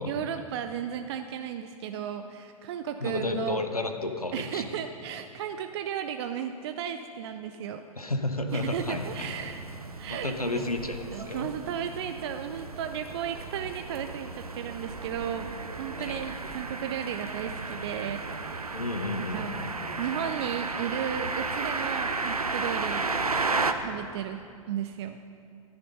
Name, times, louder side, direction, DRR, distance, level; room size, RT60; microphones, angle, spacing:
voice 1, 0.1-3.6 4.3-7.9 8.5-9.6 10.0-10.7 11.1-18.8 19.3-19.6 20.0-23.1 23.8-25.2, right 9 dB, 45° right, 7 dB, 0.6 m, -34 dB
voice 2, 3.0-4.7 8.0-9.3 10.1-11.5 16.0-16.2 18.7-19.7, left 2 dB, 90° left, 6 dB, 1.0 m, -32 dB
sound 1, 8.5-23.7, right 3 dB, 85° right, 0.7 m, -34 dB
13.0 x 10.5 x 5.4 m, 2.3 s
figure-of-eight pair, 100°, 18 cm